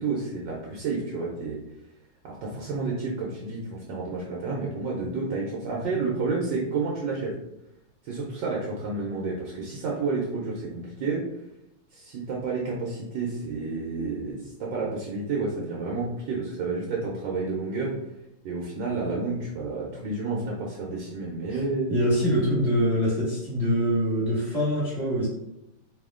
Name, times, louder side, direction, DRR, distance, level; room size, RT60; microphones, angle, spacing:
voice 1, 0.0-1.6 2.2-7.3 8.0-11.2 11.9-17.9 18.4-21.9, right 3 dB, 70° right, -3 dB, 1.3 m, -30 dB
voice 2, 21.9-25.3, equal, 10° right, -8 dB, 1.2 m, -24 dB
4.2 x 2.7 x 3.7 m, 0.85 s
omnidirectional pair, 2.4 m